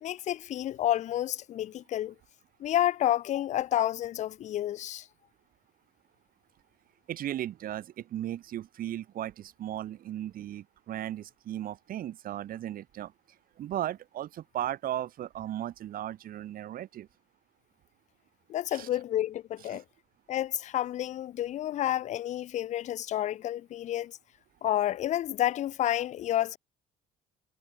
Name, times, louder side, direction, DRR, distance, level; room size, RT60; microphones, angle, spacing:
voice 1, 0.0-2.1 2.6-5.1 18.5-19.8 20.3-24.2 24.6-26.6, left 12 dB, 45° left, 0.4 m, -30 dB
voice 2, 7.1-13.1 13.6-17.1 18.7-18.9 19.7-19.8, right 12 dB, 60° right, 1.1 m, -36 dB
cardioid pair, 110°, 17 cm